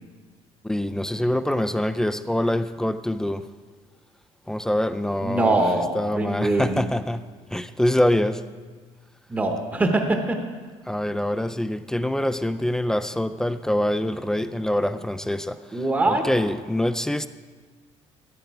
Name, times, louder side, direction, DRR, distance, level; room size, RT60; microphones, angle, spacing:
voice 1, 0.6-3.5 4.5-5.6 5.9-7.2 7.5-8.4 10.9-17.3, left 1 dB, 5° left, 11 dB, 0.3 m, -25 dB
voice 2, 5.2-6.9 9.3-10.4 15.7-16.2, right 2 dB, 15° right, 4 dB, 0.9 m, -23 dB
14.5 x 9.0 x 4.7 m, 1.5 s
cardioid pair, 155°, 12 cm